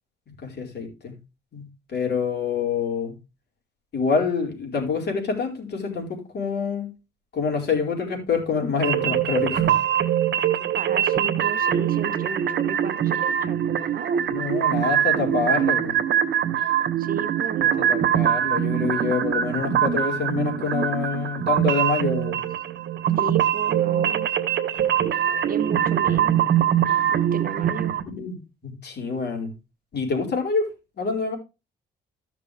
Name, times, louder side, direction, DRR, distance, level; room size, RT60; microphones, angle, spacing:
voice 1, 0.3-1.1 1.5-3.1 3.9-6.9 7.3-9.8 14.3-15.9 17.9-22.4 28.0-29.5 29.9-31.4, left 5 dB, 55° left, 4.6 m, -26 dB
sound 1, 8.8-28.0, right 10 dB, 60° right, 1.4 m, -23 dB
voice 2, 10.7-14.3 17.0-18.1 23.2-24.3 25.5-26.5 27.1-28.0, right 6 dB, 45° right, 1.0 m, -33 dB
14.0 x 6.1 x 3.5 m
cardioid pair, 90°, 20 cm